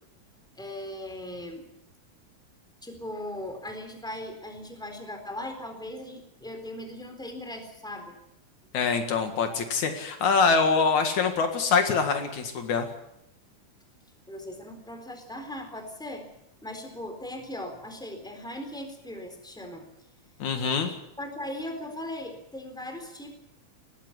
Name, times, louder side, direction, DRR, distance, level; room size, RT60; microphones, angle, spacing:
voice 1, 0.6-1.6 2.8-8.2 14.3-16.3 16.6-19.8 21.2-23.3, left 1 dB, ahead, 5 dB, 3.6 m, -38 dB
voice 2, 8.7-12.9 20.4-20.9, left 5 dB, 75° left, 6 dB, 3.3 m, -24 dB
20.0 x 15.0 x 9.8 m, 0.82 s
omnidirectional pair, 3.4 m